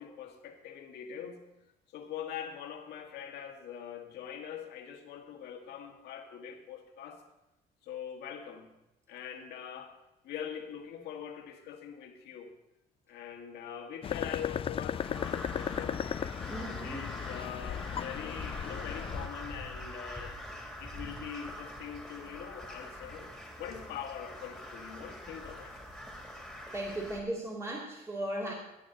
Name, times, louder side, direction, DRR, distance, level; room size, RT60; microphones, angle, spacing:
voice 1, 0.0-1.4 1.9-7.2 7.8-8.7 9.1-10.0 10.2-12.5 13.1-16.1 16.7-23.3 23.6-25.7, left 8 dB, 75° left, 3 dB, 1.8 m, -43 dB
sound 1, 14.0-19.3, left 8 dB, 35° left, 0.4 m, -36 dB
Crow, 14.9-27.2, left 1 dB, ahead, 2.9 m, -44 dB
voice 2, 16.5-17.0 26.7-28.5, right 1 dB, 15° right, -3 dB, 2.6 m, -36 dB
16.5 x 9.8 x 4.0 m, 0.95 s
cardioid pair, 110°, 17 cm